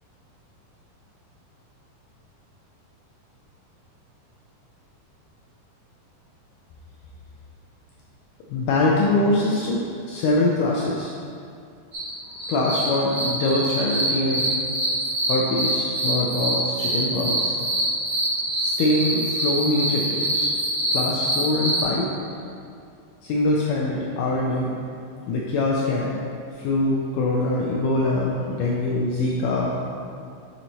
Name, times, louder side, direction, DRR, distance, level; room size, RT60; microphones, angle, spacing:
voice 1, 8.5-11.1 12.5-14.5 15.3-17.6 18.6-20.5 20.9-22.1 23.2-24.8 25.3-26.2 26.6-29.7, left 2 dB, 85° left, -3 dB, 1.9 m, -23 dB
sound 1, 11.9-21.8, right 1 dB, 75° right, 0.9 m, -25 dB
7.6 x 4.4 x 4.0 m, 2.4 s
omnidirectional pair, 4.3 m